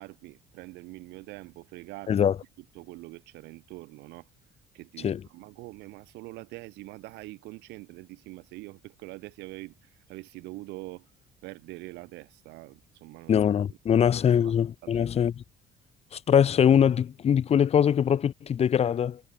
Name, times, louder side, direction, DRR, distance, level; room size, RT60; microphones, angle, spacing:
voice 1, 0.0-2.2 2.7-4.3 4.7-11.1 11.4-13.4 13.9-14.5 14.8-15.1, right 20 dB, 90° right, 1.5 m, -44 dB
voice 2, 13.3-15.3 16.1-19.2, left 8 dB, 40° left, 0.7 m, -22 dB
cardioid pair, 110°, 17 cm